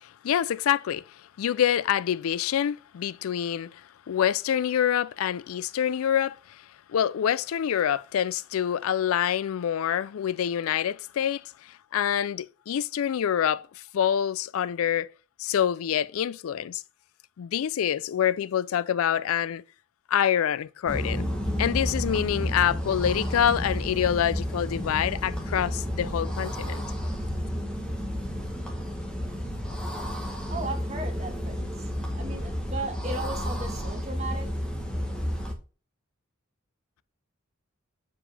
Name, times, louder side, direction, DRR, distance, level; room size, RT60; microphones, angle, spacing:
voice 1, 0.0-1.0 1.4-3.8 4.1-6.6 6.9-15.1 15.4-16.8 17.4-19.6 20.1-21.3 21.6-26.8, left 9 dB, 75° left, 0.3 m, -26 dB
sound 1, 20.9-35.5, equal, 5° left, 1.1 m, -31 dB
voice 2, 30.5-31.7 32.1-34.5, right 2 dB, 30° right, 1.5 m, -36 dB
7.1 x 4.7 x 3.4 m
head